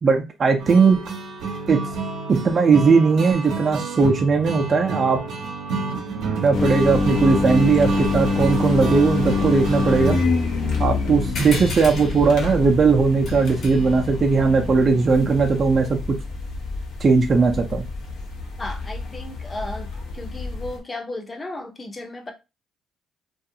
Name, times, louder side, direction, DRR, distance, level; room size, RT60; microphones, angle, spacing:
voice 1, 0.0-1.0 1.7-1.8 2.3-5.2 6.4-10.2 10.8-16.0 17.0-17.9, right 4 dB, 40° right, 0.5 m, -18 dB
sound 1, 0.6-10.3, right 4 dB, 75° right, 0.7 m, -30 dB
sound 2, 6.5-20.8, left 3 dB, 75° left, 0.7 m, -26 dB
sound 3, 11.4-16.3, left 4 dB, 60° left, 1.1 m, -35 dB
voice 2, 18.6-22.3, left 2 dB, 25° left, 0.7 m, -34 dB
2.4 x 2.4 x 2.7 m
cardioid pair, 80°, 0 cm